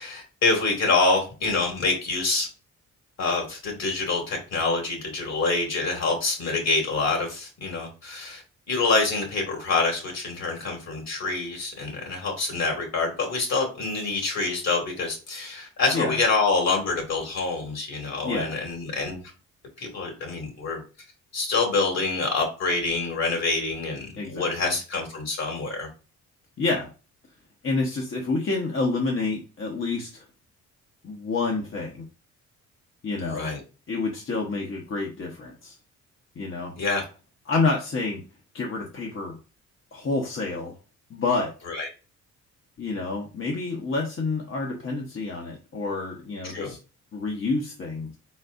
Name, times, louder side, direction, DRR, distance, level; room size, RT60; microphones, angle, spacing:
voice 1, 0.0-2.5 3.2-8.4 8.7-19.2 19.8-20.8 21.3-25.9 33.2-33.6 36.8-37.0 41.7-41.9 46.5-46.7, left 3 dB, 60° left, 1 dB, 2.5 m, -26 dB
voice 2, 18.2-18.6 24.2-24.7 26.6-26.9 27.6-30.2 31.0-32.0 33.0-33.5 33.9-35.8 36.4-36.7 37.5-38.2 38.5-39.4 39.9-40.7 41.1-41.5 42.8-46.8 47.1-48.2, left 3 dB, 45° left, 0 dB, 1.1 m, -28 dB
4.6 x 4.2 x 2.6 m, 0.33 s
cardioid pair, 90°, 30 cm